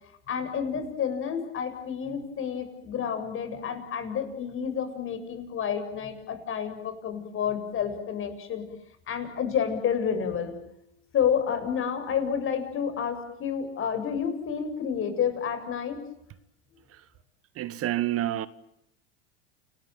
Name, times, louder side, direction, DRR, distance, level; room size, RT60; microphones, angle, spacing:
voice 1, 0.3-8.6 9.1-10.6 11.1-16.0, left 7 dB, 40° left, 7.5 m, -29 dB
voice 2, 17.5-18.5, right 14 dB, 40° right, 1.3 m, -28 dB
29.5 x 20.0 x 9.2 m
hypercardioid pair, 105°, 34 cm